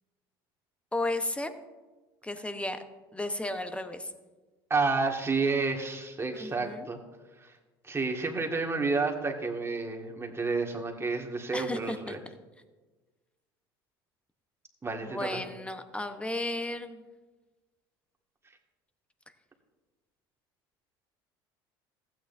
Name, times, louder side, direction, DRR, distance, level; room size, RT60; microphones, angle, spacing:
voice 1, 0.9-1.5 2.2-2.8 3.1-4.1 6.4-6.9 11.5-12.2 15.0-17.0, left 2 dB, 10° left, 9 dB, 1.0 m, -34 dB
voice 2, 4.7-7.0 7.4-7.5 7.8-12.2 14.8-15.4, right 3 dB, 20° right, 1 dB, 1.9 m, -30 dB
15.5 x 8.9 x 2.6 m, 1.3 s
hypercardioid pair, 75°, 12 cm